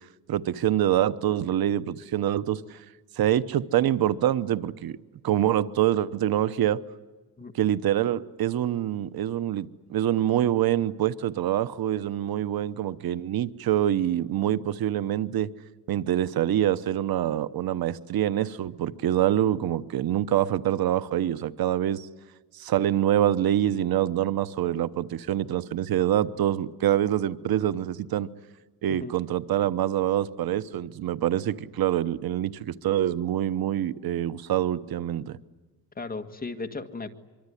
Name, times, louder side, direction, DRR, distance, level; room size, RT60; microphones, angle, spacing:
voice 1, 0.3-2.8 3.2-5.0 5.2-6.8 7.5-15.5 15.9-22.1 22.5-28.3 28.8-35.4, right 11 dB, 80° right, 14 dB, 1.0 m, -25 dB
voice 2, 36.0-37.1, left 3 dB, 25° left, 7 dB, 1.8 m, -35 dB
24.5 x 24.5 x 10.0 m, 1.2 s
cardioid pair, 130°, 35 cm